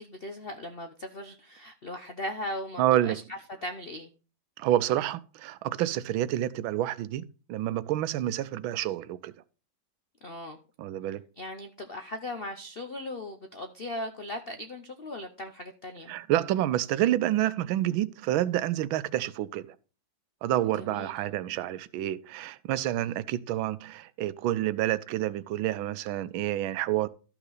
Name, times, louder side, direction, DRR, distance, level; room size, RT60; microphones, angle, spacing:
voice 1, 0.0-4.1 10.2-10.6 11.4-16.1 20.7-21.1, left 1 dB, 70° left, 0.5 m, -38 dB
voice 2, 2.8-3.2 4.6-7.2 7.5-9.3 10.8-11.2 16.1-19.7 20.4-27.1, right 13 dB, 85° right, 1.4 m, -28 dB
13.0 x 5.9 x 4.0 m
omnidirectional pair, 2.1 m